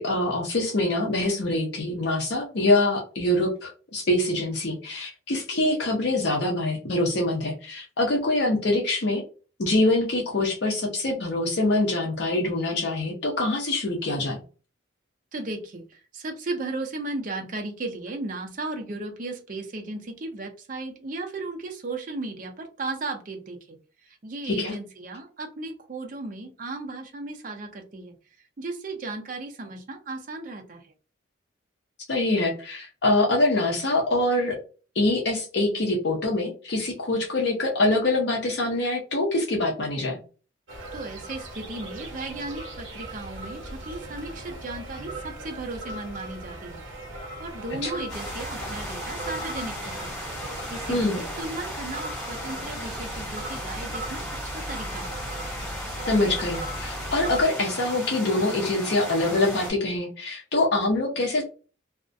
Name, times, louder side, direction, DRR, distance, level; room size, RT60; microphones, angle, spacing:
voice 1, 0.0-9.2 9.6-14.4 24.4-24.7 32.1-34.6 35.0-40.2 47.8-47.9 50.9-51.2 56.1-61.4, left 2 dB, 55° left, -1 dB, 0.6 m, -24 dB
voice 2, 15.3-23.8 24.0-28.1 28.6-30.9 40.9-46.9 47.4-50.2 50.7-55.2, right 2 dB, 40° right, 4 dB, 0.5 m, -35 dB
sound 1, 40.7-57.4, right 1 dB, 75° right, 0.7 m, -38 dB
sound 2, 48.1-59.7, equal, 5° left, 1.2 m, -36 dB
2.3 x 2.1 x 2.5 m, 0.36 s
head